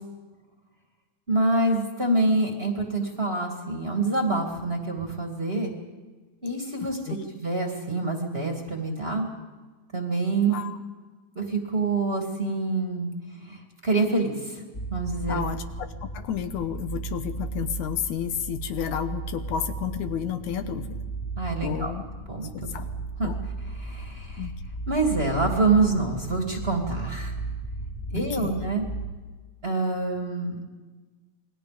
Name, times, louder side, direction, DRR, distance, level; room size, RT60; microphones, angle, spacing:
voice 1, 1.3-5.7 6.4-7.0 7.3-9.3 9.9-10.5 11.3-13.1 13.4-14.6 14.9-15.4 21.4-21.9 22.3-22.7 23.2-23.3 23.6-24.5 24.9-27.3 28.1-28.9 29.6-30.5, right 3 dB, 20° right, 2 dB, 2.4 m, -26 dB
voice 2, 10.5-10.8 15.3-21.0 21.6-22.0 22.5-22.9 23.2-23.4 24.4-24.5 28.1-28.6, left 9 dB, 80° left, 8 dB, 2.5 m, -31 dB
sound 1, 14.7-29.1, right 3 dB, 25° left, 3.0 m, -35 dB
28.0 x 21.0 x 5.2 m, 1.3 s
omnidirectional pair, 3.4 m